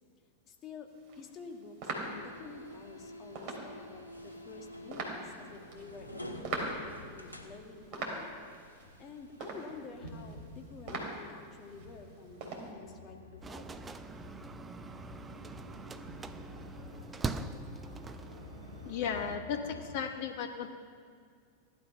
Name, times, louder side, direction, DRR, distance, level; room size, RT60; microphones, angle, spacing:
voice 1, 0.5-0.9 1.2-6.1 6.5-8.3 9.0-13.9, left 4 dB, 30° left, 3 dB, 1.9 m, -49 dB
sound 1, 0.9-12.7, right 2 dB, 40° right, 3.6 m, -43 dB
sound 2, 2.0-20.0, left 1 dB, 85° left, 1.6 m, -50 dB
sound 3, 13.4-19.4, right 4 dB, 15° right, 0.7 m, -42 dB
voice 2, 18.8-20.7, left 7 dB, 50° left, 6 dB, 1.0 m, -35 dB
16.5 x 12.0 x 5.6 m, 2.1 s
figure-of-eight pair, 90°, 0 cm